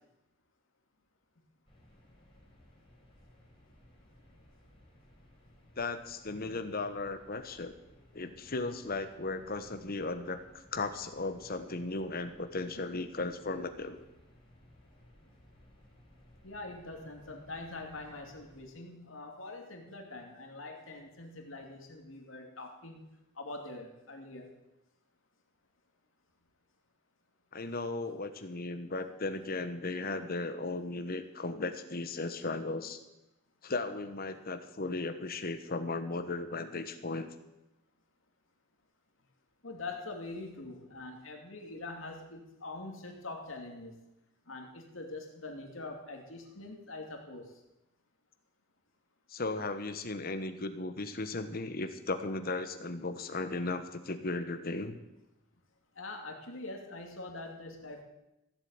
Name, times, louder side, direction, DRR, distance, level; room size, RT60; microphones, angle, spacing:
sound 1, 1.7-18.6, equal, 25° left, 4.5 m, -60 dB
voice 1, 5.8-7.7 8.1-14.0 27.5-33.0 33.6-37.3 49.3-55.0, left 3 dB, 50° left, 9 dB, 1.2 m, -36 dB
voice 2, 16.4-23.0 23.3-24.5 39.6-44.0 44.5-47.5 56.0-58.0, left 2 dB, 80° left, 2 dB, 2.5 m, -44 dB
15.5 x 7.8 x 8.9 m, 0.93 s
head